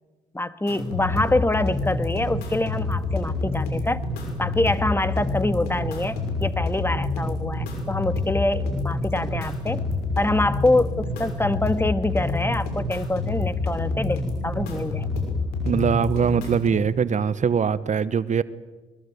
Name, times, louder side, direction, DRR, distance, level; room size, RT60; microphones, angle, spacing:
voice 1, 0.3-4.0 4.4-9.8 10.2-15.2, left 2 dB, 15° left, 12 dB, 1.7 m, -25 dB
sound 1, 0.7-16.7, left 3 dB, 80° left, 6.1 m, -27 dB
voice 2, 15.6-18.4, right 7 dB, 50° right, 16 dB, 1.1 m, -22 dB
22.5 x 21.0 x 9.6 m, 1.3 s
hypercardioid pair, 50°, 16 cm